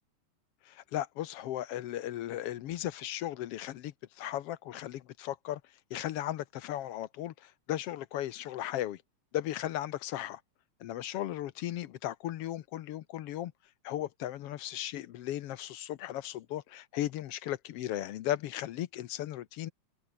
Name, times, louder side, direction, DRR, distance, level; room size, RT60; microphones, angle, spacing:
voice 1, 0.7-5.6 5.9-9.0 9.3-10.4 10.8-13.5 13.8-19.7, left 13 dB, 70° left, 1.6 m, -36 dB
omnidirectional pair, 3.3 m